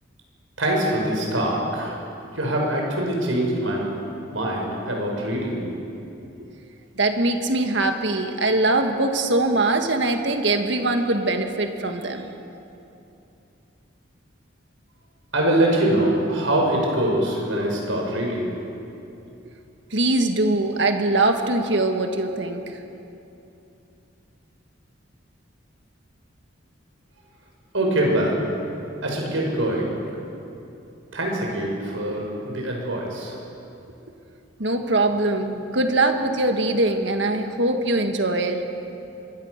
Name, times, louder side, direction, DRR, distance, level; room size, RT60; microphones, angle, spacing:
voice 1, 0.6-2.0 2.3-3.9 4.3-5.7 15.3-18.5 27.7-28.4 29.0-29.9 31.1-33.4, right 1 dB, 90° right, -1 dB, 6.1 m, -23 dB
voice 2, 7.0-12.3 19.9-22.8 34.6-38.6, right 2 dB, 65° right, 5 dB, 1.8 m, -22 dB
25.0 x 22.0 x 6.7 m, 2.8 s
head